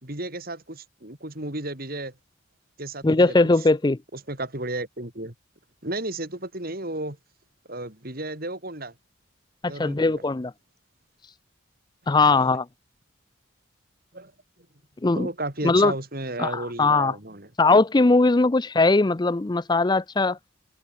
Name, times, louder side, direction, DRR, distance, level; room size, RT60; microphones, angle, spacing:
voice 1, 0.0-2.2 2.8-3.4 4.1-5.3 5.8-7.2 7.7-8.9 9.7-10.2 12.2-12.6 14.1-14.3 15.2-17.5, right 2 dB, 45° right, 3.8 m, -33 dB
voice 2, 3.0-4.0 9.6-10.5 12.1-12.7 15.0-15.3 15.6-15.9 16.4-17.1 17.6-20.4, left 3 dB, 20° left, 0.4 m, -20 dB
head